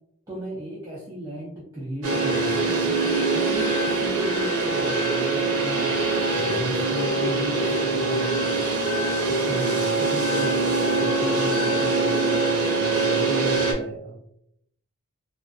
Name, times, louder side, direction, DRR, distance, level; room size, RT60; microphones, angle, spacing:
voice 1, 0.3-8.5 9.3-14.2, right 1 dB, 15° right, -8 dB, 0.5 m, -35 dB
sound 1, 2.0-13.7, right 3 dB, 70° right, 0.7 m, -23 dB
2.4 x 2.4 x 2.2 m, 0.79 s
head